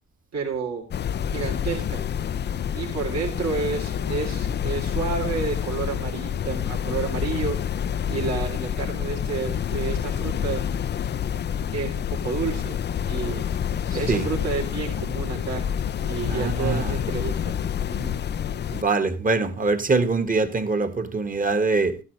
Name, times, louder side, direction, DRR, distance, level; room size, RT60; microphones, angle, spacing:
voice 1, 0.3-0.9 1.3-2.0 2.7-7.6 8.1-10.7 11.7-12.8 13.0-13.4 13.9-15.7 16.0-17.6 17.9-18.2, right 5 dB, 60° right, 3.2 m, -30 dB
sound 1, 0.9-18.8, left 9 dB, 35° left, 0.4 m, -28 dB
voice 2, 16.3-16.9 18.7-22.0, right 3 dB, 30° right, 1.6 m, -23 dB
13.5 x 10.0 x 3.1 m
cardioid pair, 90°, 30 cm